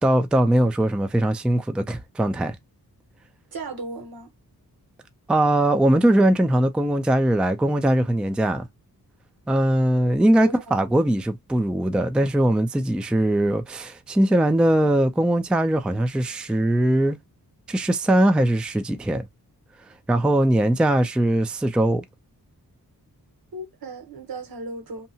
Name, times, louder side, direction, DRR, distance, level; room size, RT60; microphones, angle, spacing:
voice 1, 0.0-2.6 5.3-8.7 9.5-17.2 17.7-19.3 20.1-22.0, right 1 dB, 5° right, 0.3 m, -21 dB
voice 2, 3.5-4.3 10.4-10.7 23.5-25.1, right 2 dB, 70° right, 0.9 m, -35 dB
2.8 x 2.2 x 2.7 m
wide cardioid pair, 90°, 37 cm